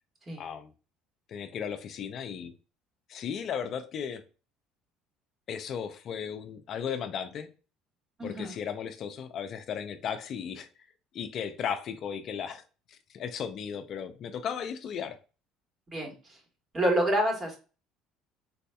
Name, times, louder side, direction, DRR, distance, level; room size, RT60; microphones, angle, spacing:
voice 1, 0.4-0.7 1.3-2.5 3.1-4.2 5.5-7.5 8.2-10.7 11.1-12.6 12.9-15.2, left 7 dB, 55° left, 0.4 m, -35 dB
voice 2, 8.2-8.6 15.9-16.4 16.7-17.6, right 1 dB, 30° right, 1.5 m, -28 dB
4.0 x 2.7 x 2.2 m
supercardioid pair, 85°, 0 cm